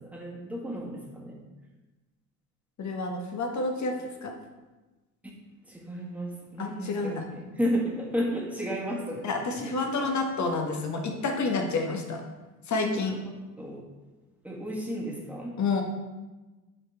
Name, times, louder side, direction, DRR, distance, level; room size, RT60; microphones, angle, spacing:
voice 1, 0.0-1.4 5.2-5.3 5.7-9.2 12.7-12.9 13.2-13.3 13.6-13.8 14.4-15.6, equal, 5° right, -3 dB, 1.8 m, -33 dB
voice 2, 2.8-4.3 6.6-7.2 9.2-12.2 12.7-13.2 15.6-15.8, left 3 dB, 35° left, 3 dB, 1.3 m, -29 dB
7.4 x 4.9 x 3.5 m, 1.2 s
hypercardioid pair, 60°, 50 cm